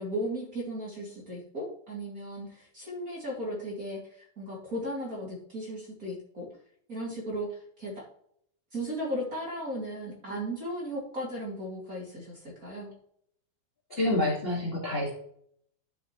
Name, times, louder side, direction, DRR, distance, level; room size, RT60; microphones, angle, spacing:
voice 1, 0.0-6.5 6.9-8.1 8.7-12.9, equal, 25° right, -3 dB, 2.4 m, -36 dB
voice 2, 13.9-15.1, left 1 dB, 25° left, -3 dB, 1.3 m, -28 dB
12.5 x 6.8 x 3.1 m, 0.66 s
omnidirectional pair, 4.4 m